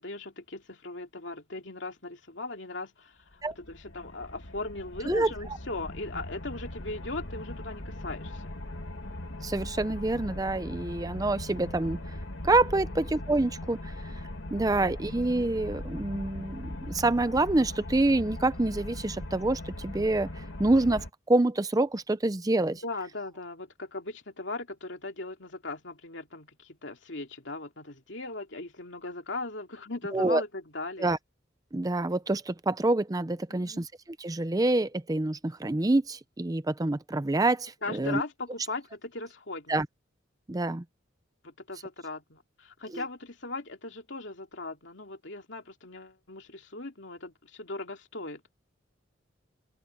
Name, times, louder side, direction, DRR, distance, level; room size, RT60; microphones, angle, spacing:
voice 1, 0.0-8.5 12.4-12.7 22.8-31.1 33.5-33.9 37.8-39.8 41.4-48.4, left 2 dB, 70° left, 2.7 m, -39 dB
sound 1, 3.3-21.1, left 1 dB, 90° left, 2.2 m, -40 dB
voice 2, 9.4-12.0 12.4-14.2 14.5-22.8 30.1-30.4 31.0-31.2 31.7-38.2 39.7-39.9 40.5-40.8, right 2 dB, 20° right, 0.6 m, -27 dB
open air
head